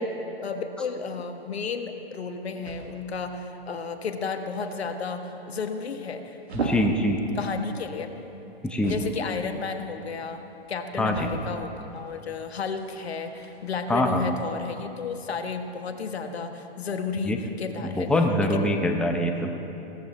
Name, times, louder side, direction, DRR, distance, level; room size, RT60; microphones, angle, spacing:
voice 1, 0.4-7.0 7.4-8.1 8.8-10.4 10.7-18.1 18.4-18.6, left 5 dB, 80° left, 7 dB, 1.4 m, -32 dB
sound 1, 1.3-14.7, right 3 dB, 85° right, 1.9 m, -41 dB
voice 2, 6.6-7.2 8.6-9.0 11.0-11.3 13.9-14.2 17.3-17.4 17.8-19.6, left 1 dB, 5° left, 3 dB, 0.7 m, -24 dB
16.5 x 14.5 x 4.2 m, 3.0 s
hypercardioid pair, 120°, 31 cm